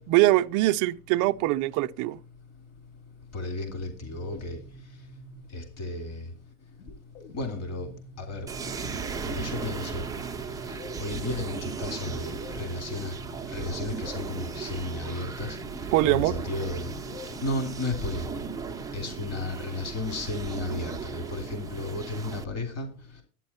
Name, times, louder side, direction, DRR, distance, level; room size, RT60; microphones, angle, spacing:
voice 1, 0.0-2.2 15.9-16.3, right 17 dB, 40° right, 0.6 m, -23 dB
voice 2, 3.3-4.6 5.5-6.3 7.3-7.9 8.2-8.5 9.2-10.1 11.0-13.1 13.5-15.6 16.1-16.9 17.4-18.4 18.9-22.9, left 2 dB, 35° left, 3.2 m, -33 dB
sound 1, 3.7-5.8 6.8-19.7, right 1 dB, 75° left, 7.9 m, -48 dB
sound 2, 8.5-22.4, right 5 dB, 10° right, 0.7 m, -36 dB
11.5 x 9.2 x 4.4 m
supercardioid pair, 135°, 47 cm